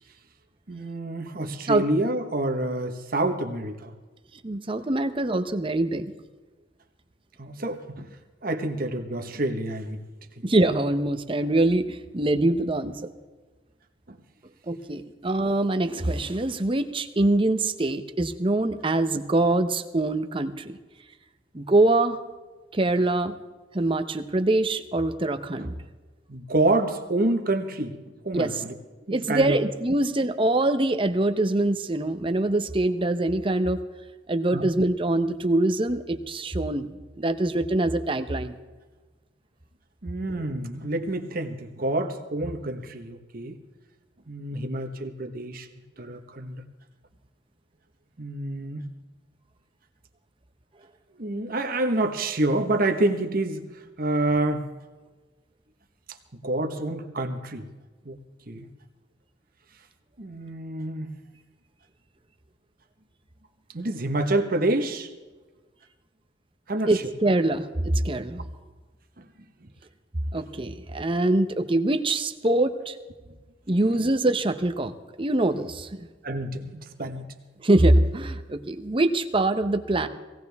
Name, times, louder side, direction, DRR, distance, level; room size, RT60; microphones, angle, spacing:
voice 1, 0.7-3.9 7.4-8.1 8.4-10.0 10.4-10.5 14.1-14.2 25.6-25.7 26.3-28.0 28.2-28.7 29.1-29.6 34.5-34.6 40.0-43.6 44.3-45.7 46.0-46.6 48.2-48.9 51.2-54.7 56.1-56.2 56.4-57.7 58.0-58.2 58.5-58.7 60.2-61.1 63.7-65.1 66.7-67.0 69.2-69.3 70.4-70.5 76.2-77.2, right 2 dB, 50° right, 6 dB, 1.2 m, -28 dB
voice 2, 4.4-6.0 10.4-13.1 14.7-20.8 21.5-22.2 22.7-23.4 23.7-25.7 28.3-28.6 29.1-33.8 34.3-36.9 37.2-38.5 66.9-68.4 70.3-73.0 73.7-74.9 75.2-76.0 77.6-80.1, right 2 dB, 30° right, 8 dB, 0.8 m, -24 dB
18.5 x 17.0 x 3.5 m, 1.3 s
head